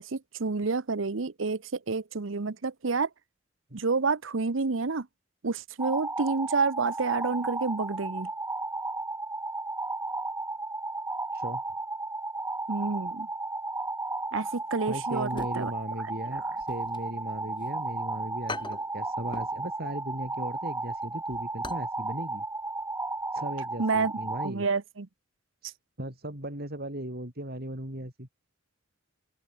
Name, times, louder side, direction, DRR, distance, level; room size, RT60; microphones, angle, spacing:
voice 1, 0.0-3.1 3.7-5.1 5.4-8.3 12.7-13.3 14.3-15.7 23.8-24.1 24.4-25.1, right 4 dB, 85° right, 0.9 m, -29 dB
sound 1, 5.8-24.5, right 2 dB, 15° right, 4.0 m, -34 dB
voice 2, 14.9-22.4 23.3-24.7 25.6-28.3, right 1 dB, 55° right, 7.4 m, -37 dB
sound 2, 15.2-16.0 16.3-17.7 18.0-18.1 18.5-19.6 19.9-20.1 20.5-21.9 22.2-22.3 22.8-23.0 23.3-23.4, left 3 dB, 25° left, 4.2 m, -42 dB
head